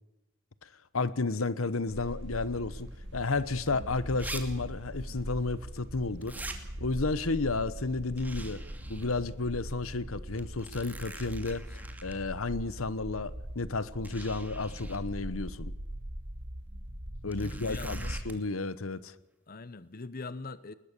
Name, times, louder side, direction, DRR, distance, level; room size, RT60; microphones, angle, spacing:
voice 1, 0.9-6.4 6.8-8.6 8.9-11.7 12.0-15.7 17.2-19.1, left 3 dB, 80° left, 1.1 m, -32 dB
sound 1, 1.9-18.2, equal, 60° right, 2.5 m, -41 dB
sound 2, 3.4-3.5 4.2-4.4 4.7-4.8 6.2-6.6 8.2-9.1 9.5-9.6 10.4-12.1 13.3-13.4 14.0-15.0 17.3-18.4, right 2 dB, 10° right, 2.5 m, -44 dB
voice 2, 17.3-18.2 19.5-20.7, left 3 dB, 45° left, 0.9 m, -42 dB
21.0 x 20.5 x 6.9 m
head